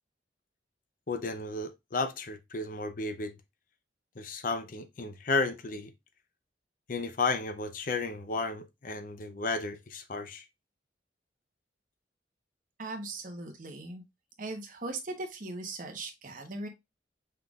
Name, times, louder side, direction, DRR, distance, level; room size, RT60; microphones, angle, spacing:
voice 1, 1.1-3.3 4.2-5.9 6.9-10.5, left 3 dB, 50° left, 0.6 m, -33 dB
voice 2, 12.8-14.0 14.4-16.7, right 2 dB, 45° right, 1.0 m, -39 dB
5.6 x 3.6 x 2.4 m
head